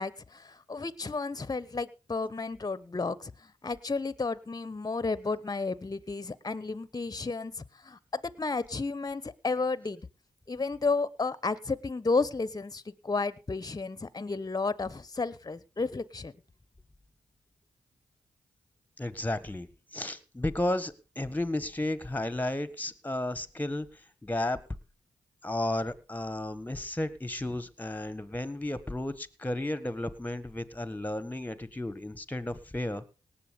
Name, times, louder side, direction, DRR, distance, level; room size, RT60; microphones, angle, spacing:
voice 1, 0.0-10.0 10.5-16.3, left 3 dB, 30° left, 19 dB, 1.1 m, -32 dB
voice 2, 19.0-24.6 25.4-33.0, left 1 dB, 15° left, 15 dB, 1.6 m, -33 dB
18.5 x 7.4 x 5.2 m, 0.34 s
supercardioid pair, 50°, 13 cm